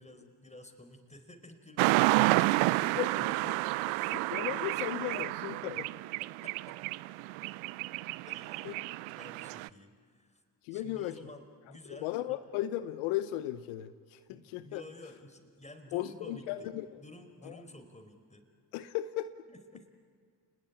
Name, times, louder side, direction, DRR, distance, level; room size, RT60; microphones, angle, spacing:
voice 1, 0.0-3.2 3.6-4.2 6.2-6.8 8.3-8.9 9.2-10.4 10.7-12.4 14.3-18.4 19.5-19.9, left 1 dB, 15° left, 6 dB, 4.8 m, -52 dB
sound 1, 1.8-9.7, right 20 dB, 75° right, 0.6 m, -30 dB
voice 2, 4.1-5.9 8.6-8.7 10.6-11.2 11.9-14.8 15.9-17.0 17.4-17.6 18.7-19.3, left 14 dB, 80° left, 12 dB, 0.9 m, -36 dB
30.0 x 20.0 x 9.8 m, 2.1 s
hypercardioid pair, 40°, 48 cm